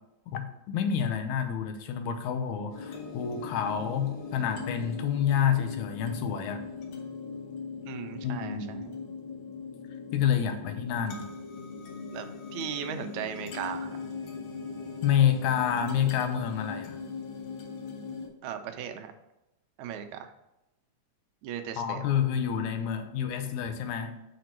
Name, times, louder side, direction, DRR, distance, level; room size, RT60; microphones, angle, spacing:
voice 1, 0.3-6.6 8.2-8.8 10.1-11.3 15.0-17.0 21.8-24.2, left 8 dB, 85° left, 7 dB, 2.2 m, -28 dB
sound 1, 2.7-18.3, left 5 dB, 60° left, 1.4 m, -40 dB
voice 2, 7.9-8.9 12.1-12.3 12.5-14.0 18.4-19.1 19.8-20.3 21.4-22.0, right 8 dB, 80° right, 7 dB, 2.1 m, -37 dB
6.1 x 5.1 x 4.4 m, 0.90 s
omnidirectional pair, 3.4 m